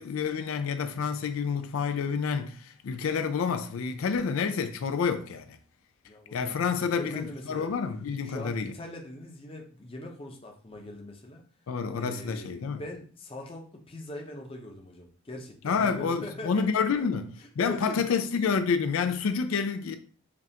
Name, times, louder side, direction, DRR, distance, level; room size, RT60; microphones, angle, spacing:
voice 1, 0.0-5.6 6.3-8.7 11.7-12.8 15.6-20.0, left 5 dB, 80° left, 0.4 m, -29 dB
voice 2, 6.0-7.7 8.2-11.4 11.9-17.1 17.6-18.2, left 1 dB, 25° left, 0.6 m, -42 dB
5.3 x 2.4 x 2.8 m
head